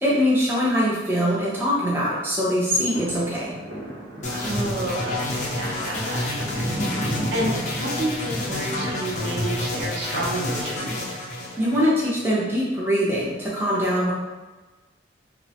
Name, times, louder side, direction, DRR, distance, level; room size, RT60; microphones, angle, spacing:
voice 1, 0.0-3.5 11.6-14.1, equal, 10° right, -7 dB, 0.5 m, -22 dB
sound 1, 2.3-10.6 11.1-11.2, right 1 dB, 85° right, 0.8 m, -35 dB
sound 2, 4.2-12.3, left 1 dB, 40° left, 0.5 m, -29 dB
voice 2, 4.3-11.1, right 1 dB, 60° right, -3 dB, 0.5 m, -30 dB
3.0 x 2.1 x 2.7 m, 1.2 s
head